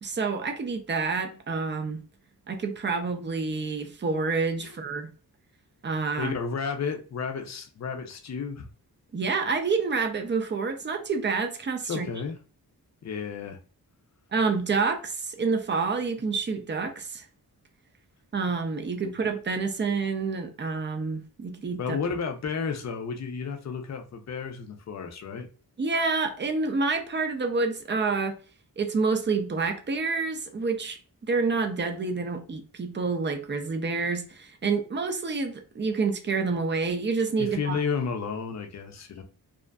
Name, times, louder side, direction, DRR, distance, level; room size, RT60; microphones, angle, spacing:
voice 1, 0.0-2.0 2.5-5.1 5.8-6.3 9.1-12.1 14.3-17.3 18.3-22.0 25.8-28.4 28.8-37.8, right 4 dB, 30° right, 0.5 m, -28 dB
voice 2, 6.2-8.7 11.9-12.4 13.0-13.6 21.8-25.5 37.4-39.2, left 5 dB, 45° left, 0.5 m, -32 dB
2.4 x 2.4 x 2.2 m
wide cardioid pair, 95°, 39 cm